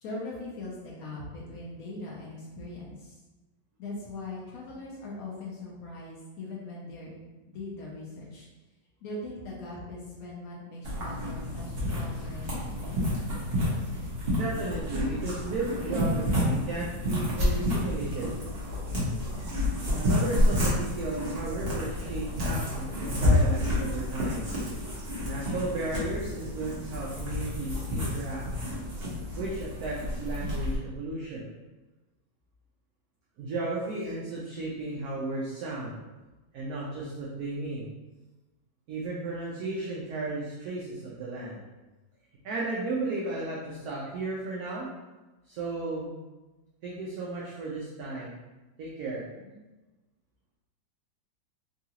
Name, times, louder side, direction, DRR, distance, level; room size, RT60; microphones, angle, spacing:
voice 1, 0.0-3.2 3.8-7.2 7.5-8.5 9.0-13.1 49.4-49.6, left 2 dB, 65° left, -4 dB, 0.9 m, -40 dB
sound 1, 10.8-30.8, left 1 dB, 40° right, 0.9 m, -29 dB
voice 2, 14.3-18.4 20.0-24.5 25.2-28.4 29.4-31.4 33.4-36.0 36.5-37.9 38.9-41.6 42.4-44.9 45.5-46.1 46.8-48.3 48.8-49.2, right 2 dB, 70° right, -5 dB, 0.9 m, -34 dB
3.8 x 2.3 x 2.8 m, 1.1 s
omnidirectional pair, 2.0 m